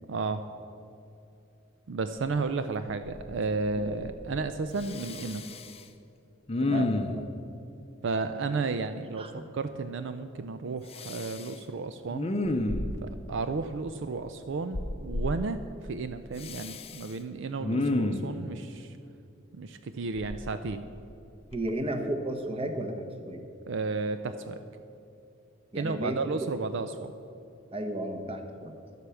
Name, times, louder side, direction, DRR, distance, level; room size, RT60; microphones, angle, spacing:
voice 1, 0.1-0.4 1.9-5.4 6.6-6.9 8.0-9.3 9.5-12.3 13.0-19.0 19.5-20.9 23.7-24.6 25.7-27.1, right 4 dB, 65° right, 10 dB, 0.5 m, -33 dB
Respiratory sounds, 2.9-3.4 3.7-4.4 4.8-5.8 6.5-7.3 10.9-11.5 12.1-13.2 14.7-15.3 16.4-17.1 17.6-18.4 20.2-21.1 21.5-21.7, left 2 dB, 30° left, 0.6 m, -31 dB
voice 2, 6.7-7.2 9.2-9.4 21.5-23.4 25.7-26.5 27.7-28.7, right 1 dB, 30° right, 5 dB, 1.1 m, -34 dB
11.5 x 8.2 x 7.0 m, 2.8 s
head